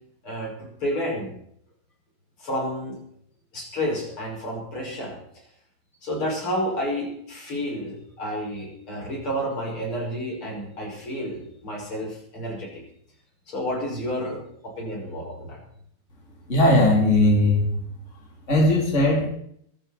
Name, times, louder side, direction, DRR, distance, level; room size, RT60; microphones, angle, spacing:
voice 1, 0.8-1.4 2.4-3.0 3.5-5.2 6.0-12.8 13.5-15.6, equal, 85° left, -2 dB, 7.0 m, -30 dB
voice 2, 16.5-17.7 18.5-19.3, left 1 dB, 35° left, -1 dB, 3.8 m, -18 dB
23.5 x 12.5 x 4.3 m, 0.68 s
omnidirectional pair, 2.3 m